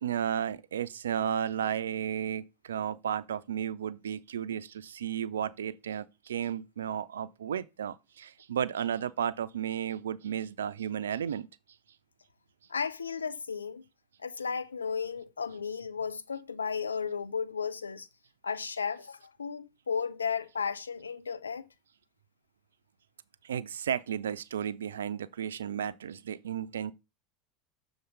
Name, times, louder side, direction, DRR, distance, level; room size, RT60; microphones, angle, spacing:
voice 1, 0.0-11.5 23.4-26.9, right 9 dB, 80° right, 0.4 m, -33 dB
voice 2, 12.7-13.8 14.2-18.1 18.4-21.7, left 6 dB, 90° left, 0.5 m, -34 dB
7.0 x 3.9 x 5.2 m
hypercardioid pair, 80°, 0 cm